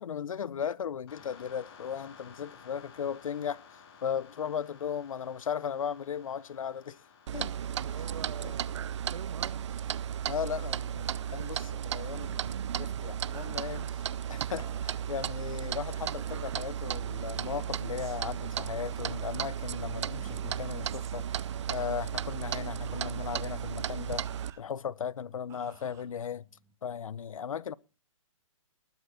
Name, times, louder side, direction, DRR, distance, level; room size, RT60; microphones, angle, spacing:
voice 1, 0.0-3.6 4.0-7.0 7.3-7.5 8.4-8.5 10.3-14.0 14.3-21.3 21.7-24.3 24.6-26.5 26.8-27.7, left 8 dB, 75° left, 0.8 m, -36 dB
sound 1, 1.1-8.6, left 6 dB, 45° left, 5.9 m, -55 dB
Clock, 7.3-24.5, right 9 dB, 55° right, 0.6 m, -35 dB
voice 2, 7.7-9.9, right 6 dB, 85° right, 2.1 m, -46 dB
sound 2, 10.9-26.7, right 9 dB, 15° right, 1.8 m, -56 dB
20.0 x 8.2 x 4.2 m
hypercardioid pair, 155°, 18 cm